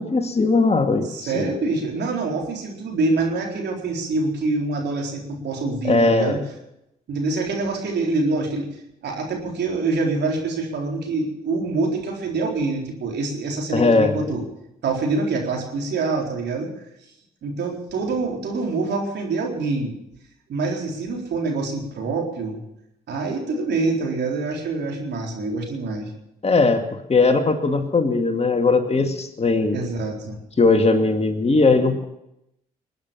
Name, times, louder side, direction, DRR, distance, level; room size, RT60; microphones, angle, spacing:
voice 1, 0.0-1.5 5.8-6.4 13.7-14.1 26.4-29.8 30.6-32.0, left 3 dB, 30° left, 6 dB, 2.2 m, -19 dB
voice 2, 1.1-6.4 7.1-8.7 9.0-14.4 14.8-16.7 17.4-20.0 20.5-22.6 23.1-26.1 29.7-30.4, right 3 dB, 60° right, 0 dB, 4.1 m, -25 dB
21.5 x 9.4 x 7.2 m, 0.82 s
hypercardioid pair, 45°, 19 cm